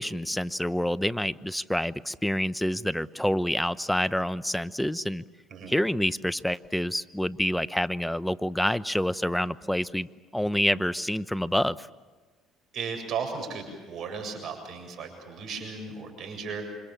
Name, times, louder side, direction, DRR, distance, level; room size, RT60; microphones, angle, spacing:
voice 1, 0.0-5.2 5.7-10.1 10.3-11.9, equal, 5° left, 16 dB, 0.9 m, -27 dB
voice 2, 12.7-16.7, right 5 dB, 60° right, 5 dB, 7.4 m, -35 dB
28.5 x 25.5 x 7.4 m, 1.3 s
hypercardioid pair, 65°, 0 cm